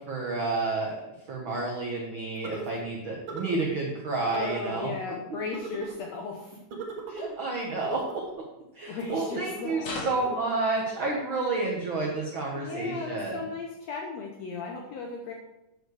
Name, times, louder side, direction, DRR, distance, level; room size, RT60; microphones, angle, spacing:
voice 1, 0.1-0.9 1.3-4.9 7.1-8.2 8.7-13.4, right 3 dB, 85° right, -2 dB, 1.1 m, -30 dB
sound 1, 2.4-2.8 3.3-3.7 4.3-4.8 5.5-6.0 6.7-7.3 7.8-8.3 9.0-9.7 10.2-10.4, right 4 dB, 55° right, 1.7 m, -38 dB
voice 2, 4.2-6.6 8.9-9.9 12.5-15.3, left 4 dB, 85° left, 1 dB, 1.5 m, -36 dB
sound 2, 9.8-10.4 13.6-13.7, left 3 dB, 55° left, 2.7 m, -36 dB
8.9 x 6.7 x 4.8 m, 0.89 s
omnidirectional pair, 4.2 m